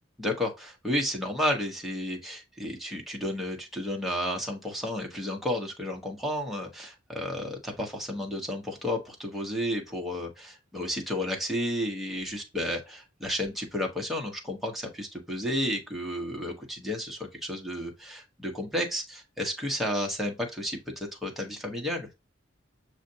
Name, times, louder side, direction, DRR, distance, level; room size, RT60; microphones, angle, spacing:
voice 1, 0.2-22.1, left 1 dB, ahead, 1.0 m, -32 dB
6.4 x 2.5 x 2.7 m
head